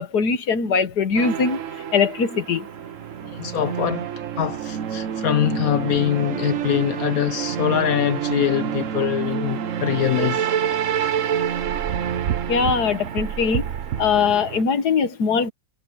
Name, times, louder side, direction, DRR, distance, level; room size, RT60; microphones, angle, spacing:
voice 1, 0.0-1.6 1.9-2.7 12.5-13.7 14.0-15.5, left 5 dB, 55° left, 1.8 m, -21 dB
sound 1, 1.2-14.6, right 9 dB, 55° right, 0.9 m, -27 dB
voice 2, 3.2-4.1 4.4-10.5, left 11 dB, 75° left, 0.8 m, -23 dB
omnidirectional pair, 2.2 m